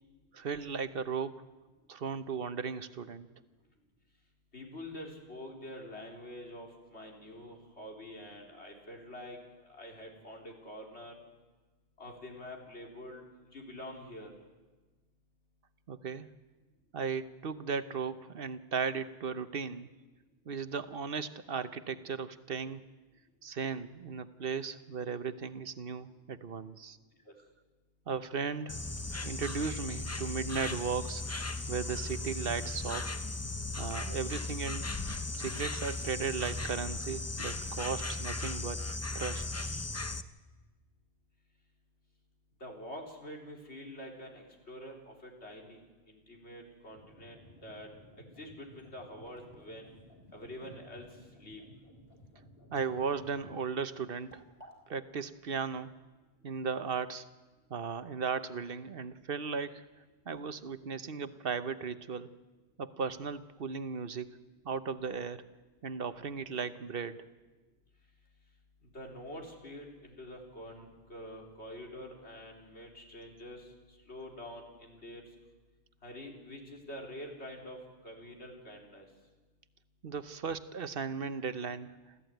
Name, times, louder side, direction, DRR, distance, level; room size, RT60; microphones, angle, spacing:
voice 1, 0.3-1.4 1.9-3.3 15.9-16.3 16.9-19.9 20.5-22.8 23.4-27.0 28.1-28.8 29.2-31.2 31.7-33.1 33.8-34.9 35.3-39.4 52.7-54.4 54.9-55.9 56.4-57.3 57.7-59.8 60.3-62.3 62.8-64.3 64.6-65.4 65.8-67.2 80.0-81.9, right 5 dB, 60° right, 12 dB, 1.1 m, -36 dB
voice 2, 4.5-9.4 9.7-11.1 12.0-13.2 13.5-14.3 27.3-27.4 42.6-45.8 46.1-47.9 48.4-49.9 50.3-51.1 51.4-51.6 68.9-73.7 74.1-75.2 76.0-77.8 78.0-79.1, left 1 dB, 85° left, 1 dB, 4.2 m, -46 dB
Insect, 28.7-40.2, left 2 dB, 15° left, 0.6 m, -37 dB
sound 1, 46.9-53.6, equal, 65° left, 4.0 m, -57 dB
sound 2, 48.5-54.8, equal, 35° left, 5.0 m, -62 dB
28.0 x 14.0 x 9.2 m, 1.2 s
omnidirectional pair, 1.1 m